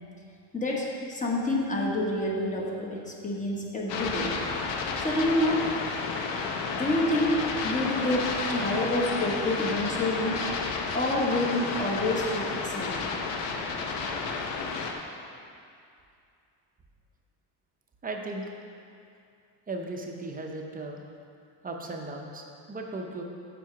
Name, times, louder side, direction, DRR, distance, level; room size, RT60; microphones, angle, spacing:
voice 1, 0.5-4.3 5.0-5.7 6.7-10.5 10.9-13.2, left 1 dB, 15° left, -2 dB, 1.1 m, -28 dB
sound 1, 3.9-14.9, left 4 dB, 75° left, 0.9 m, -31 dB
voice 2, 18.0-18.5 19.7-21.0 21.6-23.2, right 2 dB, 20° right, 1 dB, 0.6 m, -36 dB
7.5 x 5.0 x 5.8 m, 2.5 s
cardioid pair, 145°, 44 cm